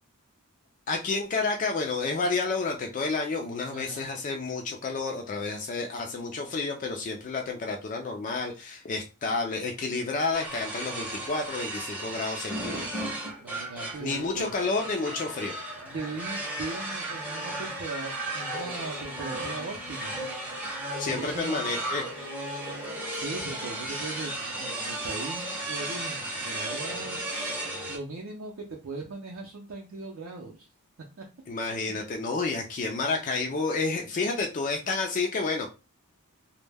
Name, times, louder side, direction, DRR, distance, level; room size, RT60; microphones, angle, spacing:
voice 1, 0.9-12.8 14.0-15.5 21.0-22.1 31.5-35.7, left 3 dB, 35° left, 2 dB, 0.3 m, -30 dB
voice 2, 3.7-4.1 13.4-14.5 15.8-20.2 21.1-21.6 23.1-30.7 31.9-32.0, right 3 dB, 60° right, -1 dB, 0.5 m, -39 dB
sound 1, 10.3-28.0, right 1 dB, 5° right, 0.6 m, -35 dB
2.1 x 2.1 x 3.2 m, 0.30 s
head